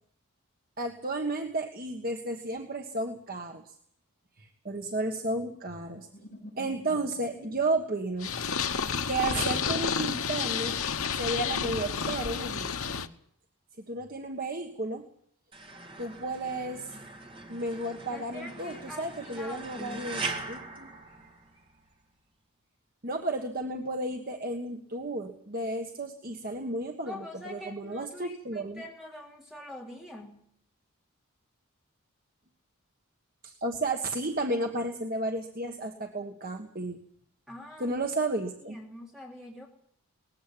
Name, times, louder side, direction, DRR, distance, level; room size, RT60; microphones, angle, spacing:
voice 1, 0.8-3.7 4.4-6.1 6.6-8.3 9.1-10.8 11.1-13.0 13.8-15.0 16.0-16.9 17.5-20.2 20.5-20.9 23.0-27.2 27.5-28.8 33.4-37.0 37.8-38.8, right 2 dB, 40° right, 3 dB, 1.5 m, -33 dB
sound 1, 6.1-7.7 8.3-12.5, left 1 dB, 35° left, 7.5 m, -51 dB
Purr, 8.2-13.1, left 6 dB, 75° left, 1.1 m, -30 dB
sound 2, 15.5-21.8, right 3 dB, 25° right, 2.0 m, -41 dB
voice 2, 18.1-20.2 27.0-30.4 37.5-38.0 38.6-39.7, left 1 dB, ahead, -1 dB, 3.1 m, -44 dB
19.5 x 15.0 x 10.0 m, 0.65 s
head